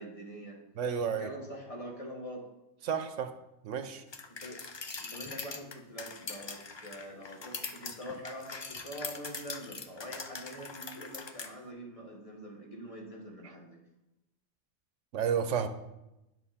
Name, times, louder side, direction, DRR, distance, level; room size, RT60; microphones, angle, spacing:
voice 1, 0.0-0.6 1.2-2.4 4.3-4.6 5.0-13.8, equal, 30° left, -1 dB, 1.7 m, -44 dB
voice 2, 0.8-1.3 2.8-3.3 3.6-4.0 15.1-15.7, right 7 dB, 75° right, 9 dB, 1.1 m, -31 dB
sound 1, 4.1-11.5, left 4 dB, 45° left, 0.3 m, -42 dB
9.1 x 6.0 x 4.3 m, 0.92 s
omnidirectional pair, 1.3 m